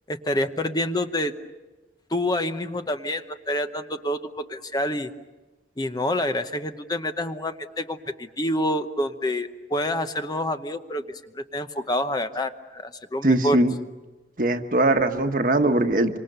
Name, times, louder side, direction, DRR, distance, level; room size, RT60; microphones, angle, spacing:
voice 1, 0.1-1.3 2.1-5.1 5.8-13.6, left 1 dB, 25° left, 8 dB, 0.9 m, -27 dB
voice 2, 13.2-13.7 14.4-16.2, right 2 dB, 50° right, 7 dB, 1.3 m, -21 dB
27.0 x 25.0 x 6.8 m, 1.2 s
head